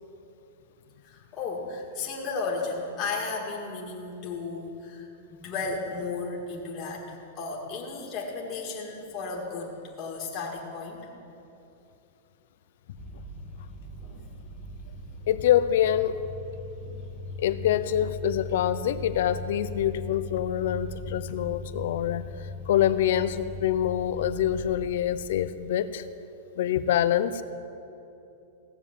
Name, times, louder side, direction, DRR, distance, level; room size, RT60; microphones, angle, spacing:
voice 1, 1.0-11.0 14.0-14.3 16.8-17.1, left 4 dB, 30° left, -2 dB, 2.0 m, -34 dB
sound 1, 13.0-24.7, left 2 dB, ahead, 1.5 m, -39 dB
voice 2, 15.3-16.2 17.4-26.0 26.6-27.4, left 11 dB, 70° left, 13 dB, 0.6 m, -25 dB
16.5 x 7.1 x 7.3 m, 2.8 s
supercardioid pair, 150°, 0 cm